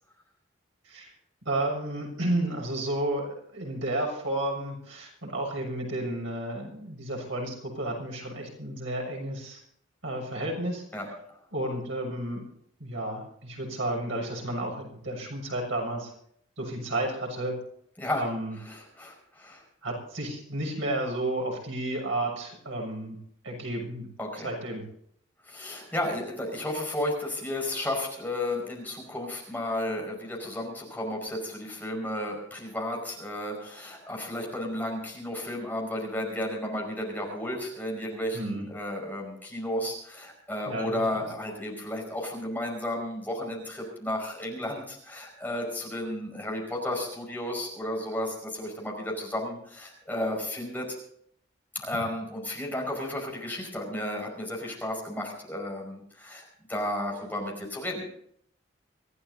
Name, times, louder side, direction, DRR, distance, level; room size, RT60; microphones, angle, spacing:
voice 1, 1.4-9.6 10.0-10.8 11.5-12.4 12.8-16.1 16.6-17.6 18.1-18.6 19.8-23.2 23.4-24.1 24.4-24.8 38.3-38.6 40.7-41.3, right 1 dB, 80° right, 0 dB, 7.0 m, -32 dB
voice 2, 18.6-19.6 24.2-24.5 25.4-51.0 51.7-58.0, left 1 dB, 10° left, -1 dB, 5.2 m, -33 dB
25.0 x 15.5 x 2.7 m, 0.65 s
head